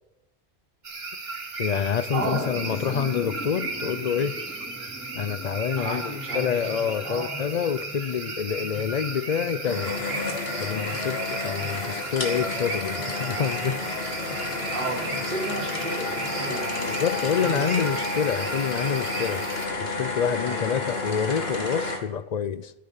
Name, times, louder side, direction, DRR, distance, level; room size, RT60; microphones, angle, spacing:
sound 1, 0.8-19.7, right 3 dB, 70° right, 1.8 m, -35 dB
voice 1, 1.6-4.4 5.1-10.0 10.6-13.8 16.8-19.5 19.8-22.7, left 7 dB, 50° left, 0.6 m, -27 dB
sound 2, 1.8-16.6, equal, 10° left, 1.8 m, -43 dB
voice 2, 2.1-2.9 5.8-6.5 6.7-7.3 14.7-17.8 20.5-20.7, right 2 dB, 50° right, 3.7 m, -33 dB
sound 3, 9.6-22.0, left 3 dB, 70° left, 2.3 m, -31 dB
11.5 x 10.5 x 7.0 m
omnidirectional pair, 1.1 m